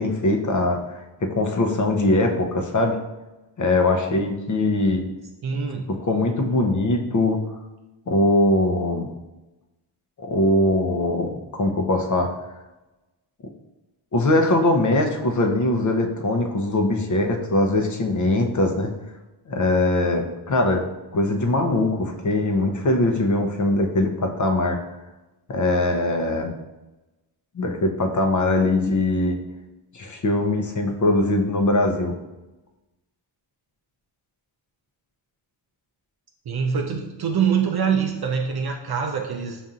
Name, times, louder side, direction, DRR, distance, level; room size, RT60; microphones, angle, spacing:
voice 1, 0.0-3.0 3.6-5.1 6.0-7.4 8.1-9.1 10.2-12.3 14.1-18.9 19.5-20.8 21.1-24.8 25.5-26.5 27.5-29.4 29.9-32.2, left 2 dB, 40° left, 4 dB, 0.7 m, -21 dB
voice 2, 5.4-5.9 36.5-39.6, right 6 dB, 50° right, 2 dB, 0.5 m, -24 dB
5.6 x 2.6 x 2.4 m, 1.1 s
cardioid pair, 45°, 49 cm